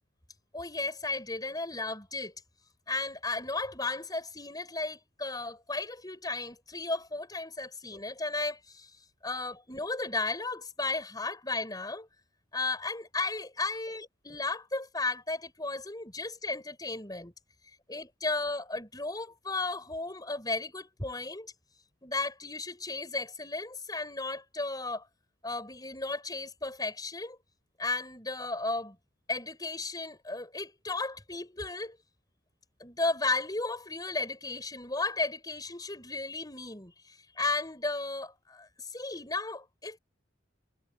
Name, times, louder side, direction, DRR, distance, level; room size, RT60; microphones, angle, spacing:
voice 1, 0.5-2.3 2.9-8.9 9.2-12.1 12.5-17.3 17.9-21.5 22.0-25.1 25.4-27.4 27.8-29.0 29.3-32.0 32.8-40.0, left 3 dB, 20° left, 6.4 m, -34 dB
head